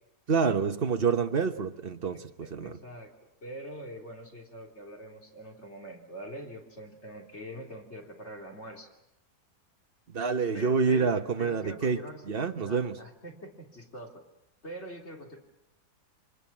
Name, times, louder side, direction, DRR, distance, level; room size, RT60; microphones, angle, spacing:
voice 1, 0.3-2.8 10.1-12.0 12.3-13.0, right 5 dB, 40° right, 7 dB, 1.3 m, -27 dB
voice 2, 2.4-8.9 10.5-11.1 11.4-12.2 12.6-14.2 14.6-15.4, equal, 40° left, 1 dB, 3.8 m, -44 dB
28.5 x 25.0 x 7.4 m, 0.88 s
omnidirectional pair, 1.7 m